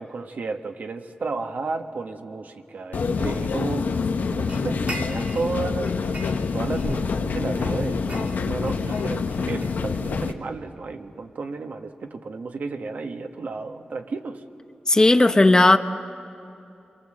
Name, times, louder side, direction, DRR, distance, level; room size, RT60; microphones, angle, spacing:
voice 1, 0.0-4.0 4.3-6.1 6.5-14.4, right 4 dB, 65° right, 5 dB, 1.5 m, -32 dB
sound 1, 2.9-10.3, left 5 dB, 80° left, 1.2 m, -26 dB
sound 2, 4.5-5.5 5.9-7.1 7.5-10.2, right 2 dB, 45° right, 2.4 m, -39 dB
voice 2, 14.9-15.8, left 2 dB, 25° left, 9 dB, 0.8 m, -15 dB
28.5 x 23.5 x 7.8 m, 2.6 s
wide cardioid pair, 105°, 3 cm